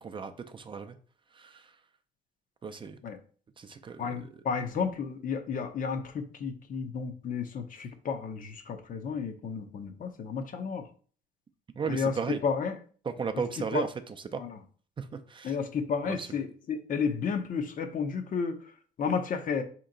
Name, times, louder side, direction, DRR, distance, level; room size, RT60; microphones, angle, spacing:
voice 1, 0.0-1.0 1.4-1.6 2.6-3.0 3.6-4.3 11.8-12.4 13.0-14.4 15.0-15.6 16.0-16.3, right 5 dB, 30° right, 7 dB, 0.5 m, -35 dB
voice 2, 4.0-10.9 11.9-12.1 12.4-12.7 13.7-13.8 14.4-14.6 15.4-18.6 19.0-19.6, left 6 dB, 50° left, 7 dB, 0.7 m, -32 dB
4.3 x 3.0 x 3.8 m, 0.42 s
cardioid pair, 95°, 17 cm